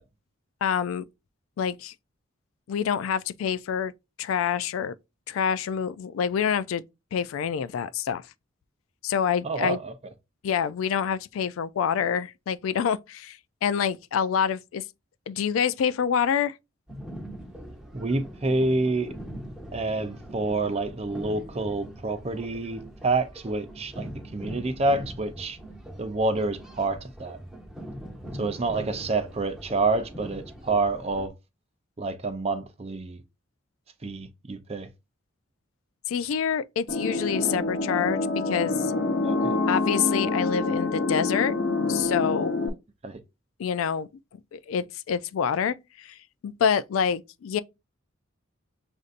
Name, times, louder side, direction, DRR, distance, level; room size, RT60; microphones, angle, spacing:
voice 1, 0.6-1.0 1.6-1.9 2.7-3.9 4.2-4.9 5.3-6.8 7.1-8.2 9.0-9.8 10.4-14.8 15.3-16.6 36.1-38.2 38.5-38.9 39.7-41.5 41.9-42.5 43.6-44.1 44.5-46.2 46.4-47.6, left 7 dB, 85° left, 0.3 m, -26 dB
voice 2, 9.4-9.9 17.9-19.2 19.7-25.6 26.0-27.4 28.4-31.3 32.0-33.2 34.0-34.9 39.2-39.5 43.0-43.2, right 3 dB, 30° right, 0.5 m, -28 dB
sound 1, 16.9-31.3, equal, 5° right, 0.9 m, -41 dB
sound 2, 36.9-42.7, left 3 dB, 55° left, 0.8 m, -26 dB
6.5 x 2.6 x 2.5 m
head